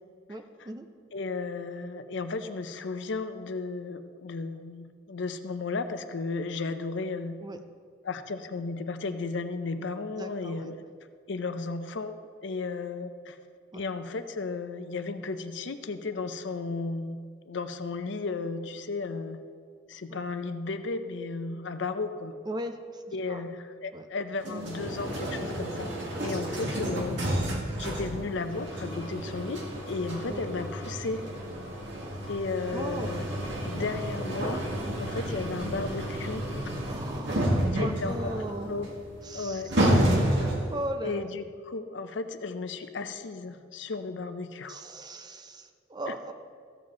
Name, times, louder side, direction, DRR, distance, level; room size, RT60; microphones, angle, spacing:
voice 1, 0.3-0.9 7.4-7.6 10.1-10.7 13.7-13.8 20.1-20.2 22.5-23.0 23.3-23.5 23.9-24.1 30.3-30.4 32.7-33.3 36.8-38.7 39.2-40.3 40.7-41.2 44.7-46.3, right 1 dB, 20° right, 7 dB, 0.6 m, -38 dB
voice 2, 1.1-7.4 8.0-10.8 11.3-12.2 12.4-13.4 13.7-19.4 19.9-22.3 23.1-25.9 26.2-27.3 27.8-31.2 32.3-33.2 33.6-34.6 35.0-36.7 37.7-38.3 38.7-38.9 39.3-39.7 41.0-44.8 46.1-46.2, left 3 dB, 70° left, 9 dB, 0.6 m, -34 dB
sound 1, 24.4-40.8, right 1 dB, 70° right, 1.9 m, -30 dB
14.5 x 7.3 x 3.8 m, 2.1 s
head